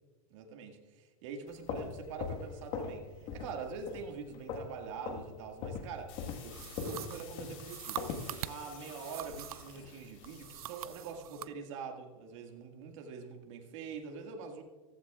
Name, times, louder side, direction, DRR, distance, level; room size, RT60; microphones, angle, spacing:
voice 1, 0.3-8.0 8.3-14.6, right 5 dB, 60° right, 3 dB, 1.9 m, -44 dB
sound 1, 1.5-3.0 3.3-3.6 3.9-4.8 5.0-5.3 5.6-8.3, left 5 dB, 40° left, 1.5 m, -39 dB
sound 2, 6.1-11.2, left 6 dB, 60° left, 3.8 m, -53 dB
sound 3, 6.5-9.8 10.2-11.5, right 13 dB, 85° right, 0.4 m, -44 dB
15.0 x 15.0 x 2.4 m, 1.4 s
hypercardioid pair, 135°, 18 cm